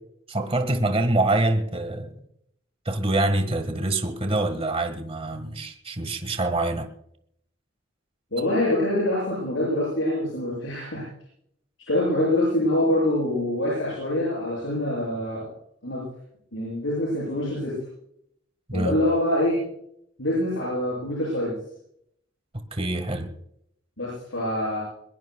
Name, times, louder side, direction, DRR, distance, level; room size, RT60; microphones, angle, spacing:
voice 1, 0.3-2.2 2.8-6.9 18.7-19.0 22.5-23.3, right 2 dB, 30° right, 1.6 m, -25 dB
voice 2, 8.3-11.1 11.9-15.5 15.8-16.1 16.5-17.8 18.7-19.6 20.2-21.6 24.0-24.8, left 1 dB, 90° left, 7.5 m, -25 dB
21.5 x 21.5 x 2.3 m
head